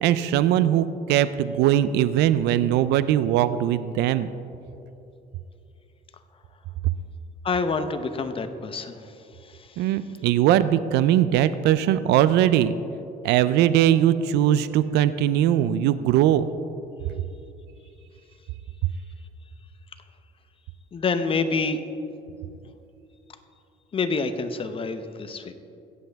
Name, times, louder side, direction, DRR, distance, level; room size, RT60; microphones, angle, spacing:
voice 1, 0.0-4.3 9.8-12.7 13.2-16.5, right 11 dB, 80° right, 14 dB, 0.4 m, -20 dB
voice 2, 7.4-9.0 9.6-9.7 20.9-21.8 23.9-25.5, left 4 dB, 30° left, 9 dB, 0.8 m, -27 dB
17.0 x 7.7 x 3.5 m, 2.7 s
cardioid pair, 110°, 17 cm